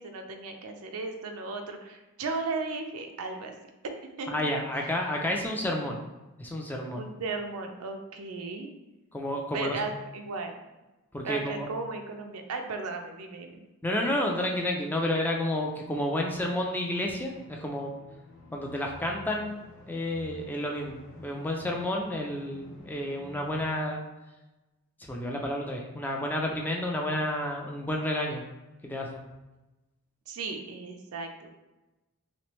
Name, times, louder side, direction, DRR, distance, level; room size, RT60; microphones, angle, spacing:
voice 1, 0.0-3.5 4.2-4.3 6.9-8.7 9.5-10.6 11.2-13.6 30.3-31.5, right 3 dB, 80° right, 5 dB, 0.5 m, -35 dB
voice 2, 4.3-6.0 6.4-7.0 9.1-9.8 11.1-11.7 13.8-17.9 18.5-24.0 25.0-28.4 28.8-29.2, left 1 dB, 10° left, 0 dB, 0.3 m, -30 dB
sound 1, 17.3-23.6, left 1 dB, 60° left, 0.8 m, -50 dB
3.3 x 3.1 x 3.0 m, 1.1 s
head